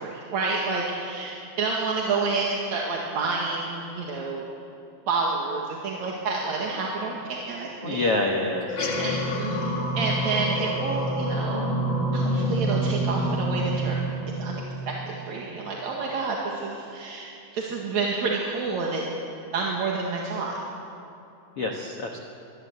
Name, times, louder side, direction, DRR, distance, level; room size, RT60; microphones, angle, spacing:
voice 1, 0.0-4.5 5.1-8.0 9.0-9.6 9.9-11.7 12.1-13.9 14.4-19.0 19.5-20.5, right 4 dB, 50° right, -2 dB, 2.6 m, -29 dB
voice 2, 7.8-9.1 21.6-22.2, left 2 dB, 85° left, 1 dB, 1.3 m, -27 dB
sound 1, 8.6-15.3, right 1 dB, 35° left, 1.9 m, -27 dB
23.5 x 20.0 x 8.2 m, 2.8 s
omnidirectional pair, 5.1 m